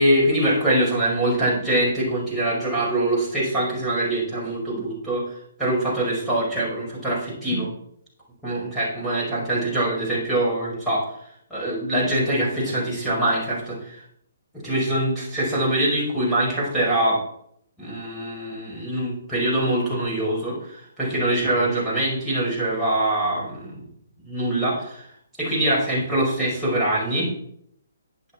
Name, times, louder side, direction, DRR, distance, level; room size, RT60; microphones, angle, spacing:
voice 1, 0.0-5.3 5.6-7.7 8.4-11.0 11.5-14.0 14.6-17.2 17.8-23.8 24.2-25.1 25.4-27.3, right 1 dB, ahead, -9 dB, 5.4 m, -23 dB
11.0 x 8.4 x 4.3 m, 0.68 s
hypercardioid pair, 145°, 0 cm